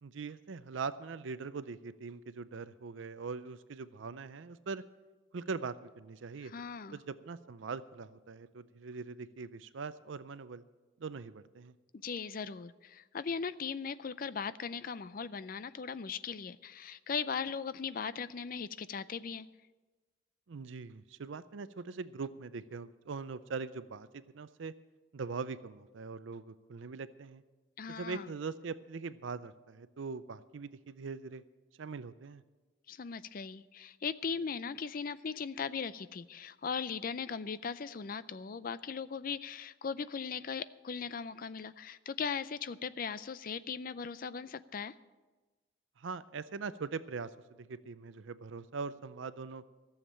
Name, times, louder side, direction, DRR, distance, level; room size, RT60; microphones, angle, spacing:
voice 1, 0.0-4.8 5.3-6.5 6.9-10.6 11.0-11.7 20.5-24.7 25.1-27.4 27.9-31.4 31.8-32.4 46.0-47.3 47.6-49.6, right 4 dB, 70° right, 15 dB, 0.5 m, -42 dB
voice 2, 6.4-7.0 12.0-19.5 27.8-28.3 32.9-44.9, left 6 dB, 45° left, 16 dB, 0.4 m, -38 dB
14.0 x 7.3 x 8.6 m, 1.2 s
head